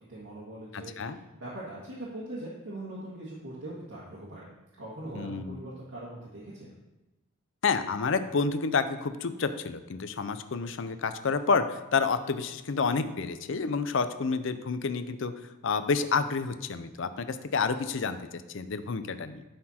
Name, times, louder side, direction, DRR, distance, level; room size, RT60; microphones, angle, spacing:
voice 1, 0.1-4.5 4.8-6.7, right 1 dB, 85° right, -7 dB, 1.8 m, -41 dB
voice 2, 0.7-1.2 5.1-5.6 7.6-15.3 15.6-19.4, left 5 dB, 65° left, 11 dB, 0.5 m, -29 dB
11.0 x 4.4 x 4.3 m, 1.0 s
head